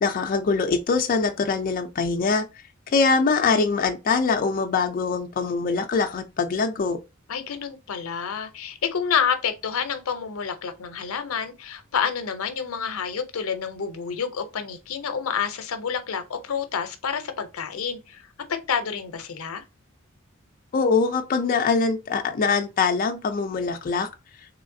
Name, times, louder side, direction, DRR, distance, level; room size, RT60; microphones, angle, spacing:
voice 1, 0.0-2.4 2.9-7.0 20.7-24.1, left 4 dB, 40° left, 0.4 m, -23 dB
voice 2, 7.3-18.3 18.7-19.6, left 7 dB, 90° left, 0.6 m, -28 dB
3.1 x 3.1 x 2.6 m
head